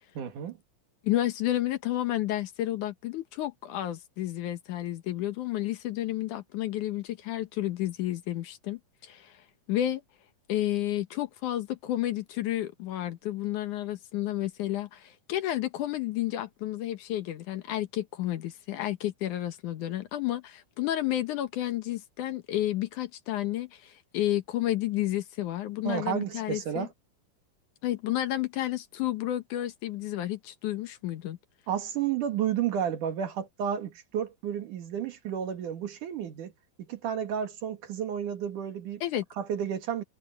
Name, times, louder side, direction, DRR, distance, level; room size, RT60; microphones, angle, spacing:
voice 1, 0.1-0.6 25.8-26.9 31.7-36.5 36.8-39.0 39.4-40.0, right 9 dB, 70° right, 3.2 m, -31 dB
voice 2, 1.0-9.3 9.7-10.0 10.5-26.9 27.8-31.4 39.0-39.2, left 13 dB, 70° left, 2.4 m, -31 dB
omnidirectional pair, 3.9 m